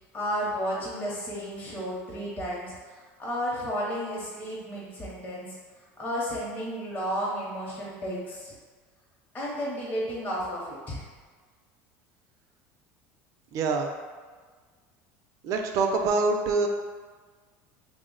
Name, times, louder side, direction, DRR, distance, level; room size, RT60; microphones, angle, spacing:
voice 1, 0.1-5.6 6.0-8.5 9.3-11.0, equal, 25° left, -6 dB, 0.7 m, -32 dB
voice 2, 13.5-13.9 15.4-16.7, right 3 dB, 55° right, 3 dB, 0.4 m, -25 dB
3.1 x 2.0 x 3.8 m, 1.5 s
supercardioid pair, 115°, 7 cm